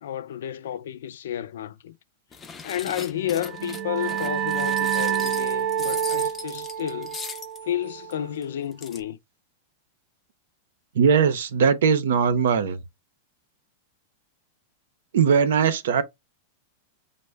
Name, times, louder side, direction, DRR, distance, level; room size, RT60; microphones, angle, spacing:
voice 1, 0.0-1.9 2.6-7.2 7.6-9.2, left 10 dB, 85° left, 0.4 m, -31 dB
sound 1, 2.3-7.6 8.1-8.2 8.4-8.5 8.7-9.0, left 5 dB, 15° left, 0.4 m, -39 dB
sound 2, 3.3-8.6, right 9 dB, 45° right, 0.4 m, -28 dB
voice 2, 11.0-12.8 15.1-16.0, right 6 dB, 85° right, 0.6 m, -20 dB
5.2 x 2.1 x 3.3 m
supercardioid pair, 155°, 0 cm